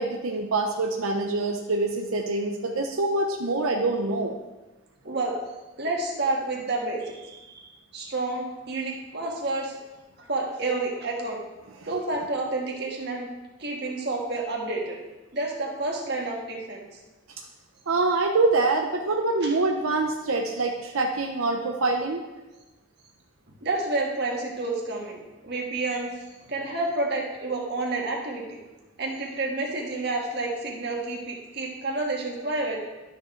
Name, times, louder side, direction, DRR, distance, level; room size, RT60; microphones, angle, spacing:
voice 1, 0.0-4.4 17.9-22.2, right 3 dB, 85° right, 2 dB, 0.8 m, -25 dB
voice 2, 5.0-5.4 5.8-9.8 10.2-11.4 11.9-13.3 13.6-15.0 15.3-17.0 19.4-19.5 23.5-28.6 29.0-32.8, right 2 dB, 50° right, -1 dB, 1.6 m, -30 dB
12.0 x 6.7 x 3.2 m, 1.1 s
head